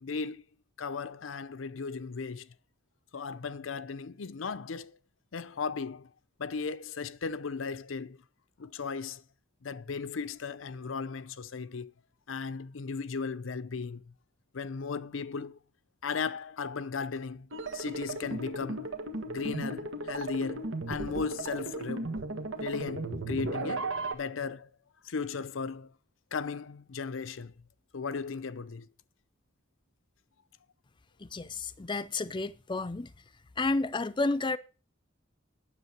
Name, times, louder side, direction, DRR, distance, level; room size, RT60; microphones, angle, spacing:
voice 1, 0.0-0.4 0.8-2.5 3.1-5.0 5.3-6.1 6.4-8.2 8.6-9.2 9.6-11.9 12.3-14.1 14.5-15.6 16.0-18.9 19.3-22.2 22.6-24.7 25.0-25.9 26.3-27.5 27.9-28.9, left 5 dB, 90° left, 0.6 m, -36 dB
sound 1, 17.5-24.1, right 2 dB, 85° right, 1.6 m, -36 dB
voice 2, 31.2-33.1 33.6-34.6, left 3 dB, 25° left, 0.5 m, -31 dB
9.7 x 7.4 x 6.0 m
head